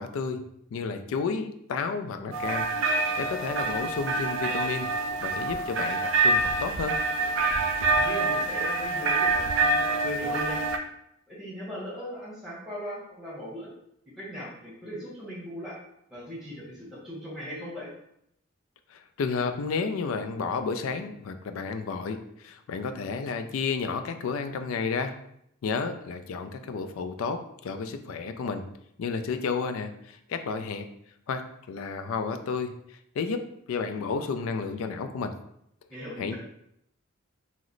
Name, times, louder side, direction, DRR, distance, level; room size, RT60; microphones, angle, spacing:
voice 1, 0.0-4.9 5.2-7.0 18.9-25.2 25.6-28.6 29.0-30.9 31.3-31.4 31.7-35.3 36.2-36.3, left 5 dB, 75° left, 8 dB, 0.3 m, -32 dB
sound 1, 2.3-10.8, right 3 dB, 65° right, 0.3 m, -26 dB
voice 2, 7.9-10.6 11.3-13.7 14.2-15.8 16.1-17.9 35.9-36.3, equal, ahead, -8 dB, 1.0 m, -38 dB
2.9 x 2.0 x 3.7 m, 0.75 s
head